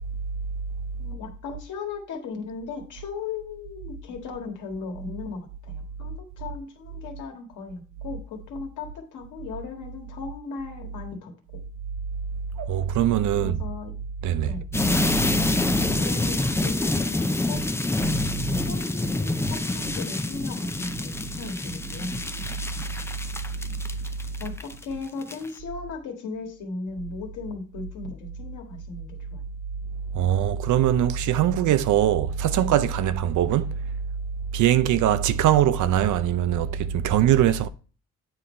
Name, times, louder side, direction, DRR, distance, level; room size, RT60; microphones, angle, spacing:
voice 1, 1.0-11.3 13.3-13.9 14.5-14.6 15.9-17.6 18.6-22.2 24.4-29.4, left 4 dB, 80° left, 1.7 m, -37 dB
voice 2, 12.6-13.6 14.2-14.6 30.1-33.8 34.5-37.7, right 11 dB, 75° right, 0.6 m, -22 dB
sound 1, 14.7-24.8 25.2-25.5, left 2 dB, 10° left, 0.5 m, -26 dB
8.9 x 3.8 x 4.3 m
cardioid pair, 90°, 30 cm